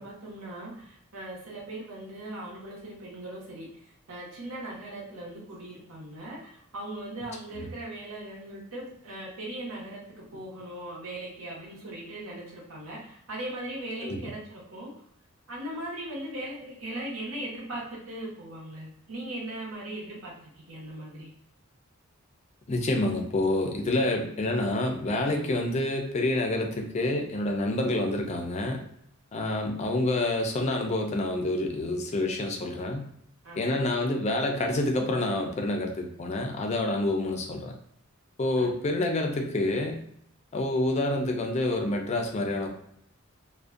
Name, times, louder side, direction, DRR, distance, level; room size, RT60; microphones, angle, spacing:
voice 1, 0.0-14.9 15.5-21.3 33.4-33.9 38.6-38.7, right 1 dB, 85° right, -5 dB, 0.8 m, -39 dB
voice 2, 22.7-28.8 29.3-33.1 33.6-37.7 38.4-40.0 40.5-42.7, left 2 dB, 30° left, 3 dB, 0.3 m, -28 dB
2.5 x 2.1 x 2.4 m, 0.70 s
head